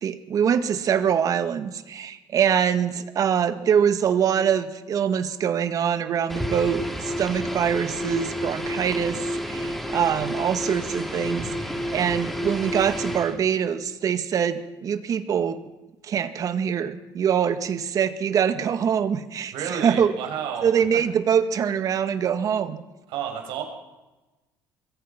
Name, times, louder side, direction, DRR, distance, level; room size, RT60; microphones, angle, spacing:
voice 1, 0.0-15.6 16.0-20.1 20.6-22.8, right 8 dB, 45° right, 10 dB, 1.9 m, -24 dB
sound 1, 6.3-13.4, equal, ahead, 3.5 m, -30 dB
voice 2, 19.5-20.7 23.1-23.6, right 8 dB, 75° right, 2 dB, 6.6 m, -31 dB
25.5 x 22.5 x 6.0 m, 1.1 s
cardioid pair, 135°, 8 cm